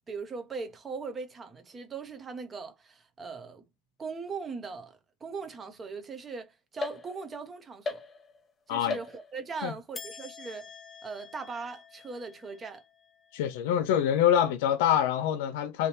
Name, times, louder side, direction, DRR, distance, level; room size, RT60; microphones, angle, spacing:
voice 1, 0.1-3.6 4.0-4.9 5.2-8.0 8.7-10.7 11.0-12.8, right 4 dB, 15° right, 0.8 m, -39 dB
sound 1, 6.8-7.5 7.8-8.5 8.9-9.6 9.9-13.4, left 3 dB, 15° left, 0.5 m, -41 dB
voice 2, 13.3-15.9, left 10 dB, 75° left, 0.8 m, -25 dB
3.4 x 2.8 x 4.3 m
cardioid pair, 180°, 0 cm